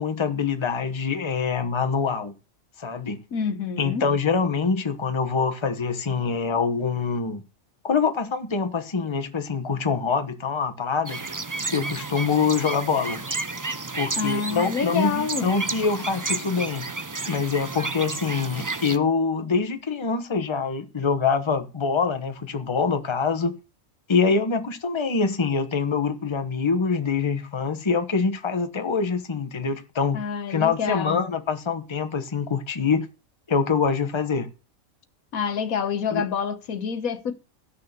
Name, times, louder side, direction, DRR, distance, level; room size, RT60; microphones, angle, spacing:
voice 1, 0.0-2.3 2.8-3.2 3.8-7.4 7.8-11.3 11.7-13.2 13.9-16.9 17.3-23.5 24.1-30.2 30.5-33.1 33.5-34.5 36.1-36.2, left 5 dB, 20° left, 1.1 m, -25 dB
voice 2, 3.3-4.0 14.2-15.5 30.1-31.3 35.3-37.3, left 6 dB, 80° left, 1.5 m, -27 dB
sound 1, 11.1-19.0, right 3 dB, 30° right, 0.3 m, -32 dB
14.5 x 6.6 x 6.7 m
omnidirectional pair, 1.5 m